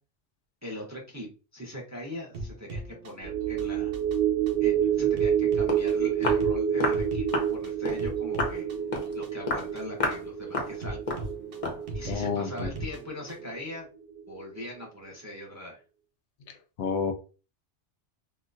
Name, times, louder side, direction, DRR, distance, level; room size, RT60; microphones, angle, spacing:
voice 1, 0.6-3.9 4.6-8.7 9.1-11.0 11.9-13.9 14.3-15.8, left 1 dB, 20° right, 0.6 m, -41 dB
sound 1, 2.3-13.6, right 2 dB, 75° right, 1.1 m, -40 dB
sound 2, 3.2-13.8 14.2-14.3, right 9 dB, 55° right, 0.6 m, -28 dB
Walk footsteps, 5.4-5.5 5.7-5.9 6.2-6.5 6.8-7.0 7.3-7.5 7.8-8.0 8.4-8.6 8.9-9.1 9.5-9.7 10.0-10.2 10.5-10.8 11.1-11.3 11.6-11.8, left 3 dB, 40° left, 0.6 m, -30 dB
voice 2, 12.1-12.7 16.8-17.1, left 6 dB, 75° left, 0.9 m, -29 dB
3.8 x 2.3 x 2.5 m
omnidirectional pair, 1.2 m